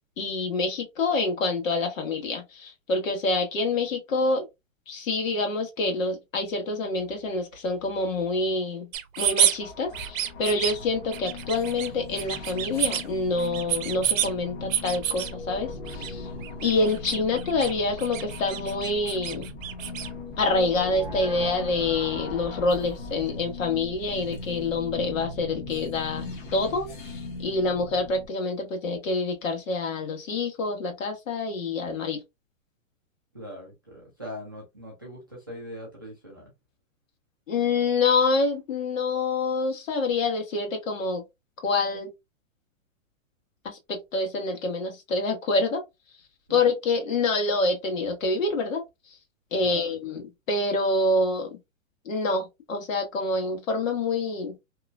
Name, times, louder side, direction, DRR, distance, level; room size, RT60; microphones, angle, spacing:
voice 1, 0.2-4.4 4.9-8.9 9.2-16.3 16.6-19.5 20.4-32.2 37.5-41.2 41.6-42.1 43.6-45.8 46.5-48.8 49.5-51.6 52.0-54.6, left 3 dB, 85° left, 1.4 m, -27 dB
sound 1, 8.9-9.6 9.9-10.7 11.1-11.9 12.1-13.0 13.4-14.3 14.7-15.3 15.8-16.1 16.4-17.7 18.0-20.1, right 10 dB, 80° right, 0.6 m, -28 dB
sound 2, 9.4-28.3, left 3 dB, 40° left, 0.8 m, -39 dB
voice 2, 33.3-36.5 46.5-46.6 49.6-50.2, equal, 20° right, 0.3 m, -41 dB
3.0 x 2.1 x 2.4 m
hypercardioid pair, 175°, 39 cm